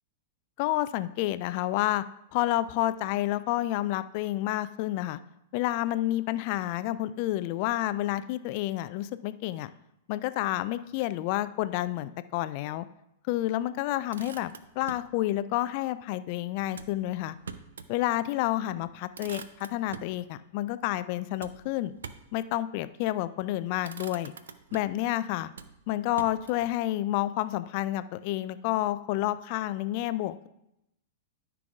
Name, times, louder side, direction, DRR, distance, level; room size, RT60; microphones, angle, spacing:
voice 1, 0.6-2.0 2.3-5.2 5.5-9.7 10.1-12.9 13.3-17.4 17.9-21.9 22.3-24.3 24.7-25.5 25.9-30.5, left 15 dB, 45° left, 14 dB, 0.4 m, -29 dB
Motor vehicle (road), 13.9-15.1 16.7-18.0 18.4-18.5 18.8-20.2 21.4-22.4 23.2-23.5 23.8-25.0 25.5-26.7, right 6 dB, 70° right, 0.5 m, -45 dB
13.0 x 6.0 x 2.4 m, 0.85 s
figure-of-eight pair, 100°, 0 cm